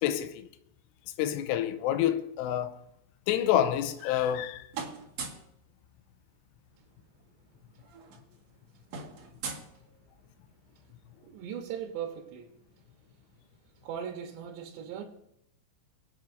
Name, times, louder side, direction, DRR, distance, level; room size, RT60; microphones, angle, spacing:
voice 1, 0.0-0.3 1.2-2.8 3.3-4.6, left 11 dB, 80° left, 2.7 m, -27 dB
sound 1, 3.7-4.4 4.7-5.5 6.9-7.0 7.2-7.5 7.7-10.4, right 5 dB, 55° right, 2.1 m, -42 dB
voice 2, 11.2-12.5 13.8-15.0, right 8 dB, 75° right, 3.1 m, -38 dB
24.0 x 8.2 x 2.6 m
omnidirectional pair, 5.4 m